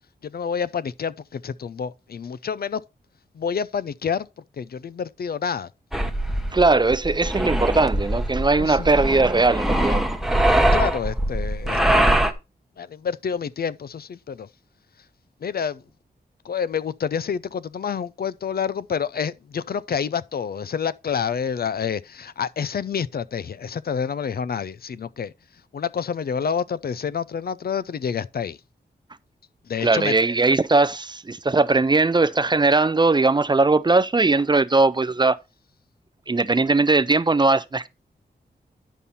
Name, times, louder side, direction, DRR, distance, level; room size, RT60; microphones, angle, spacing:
voice 1, 0.2-2.8 3.3-4.3 4.6-5.7 8.6-8.9 10.7-12.1 12.8-14.5 15.4-15.8 16.4-25.3 25.7-28.6 29.7-30.1, left 7 dB, 60° left, 0.5 m, -28 dB
sound 1, 5.9-12.3, right 1 dB, ahead, 0.9 m, -22 dB
voice 2, 6.5-10.0 29.8-35.4 36.3-37.9, right 3 dB, 25° right, 0.4 m, -19 dB
10.0 x 5.5 x 4.1 m
wide cardioid pair, 110°, 18 cm